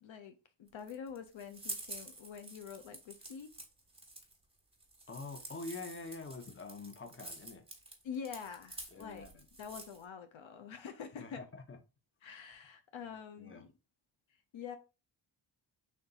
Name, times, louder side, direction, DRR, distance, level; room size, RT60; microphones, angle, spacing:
voice 1, 0.0-3.5 8.0-11.4 12.2-13.7 14.5-14.8, left 7 dB, 70° left, 0.6 m, -46 dB
sound 1, 0.7-10.0, right 2 dB, 10° right, 1.2 m, -48 dB
voice 2, 5.1-7.6 8.9-9.4 11.2-11.8 13.4-13.6, left 3 dB, 25° left, 0.8 m, -46 dB
3.5 x 2.7 x 3.9 m
cardioid pair, 70°, 48 cm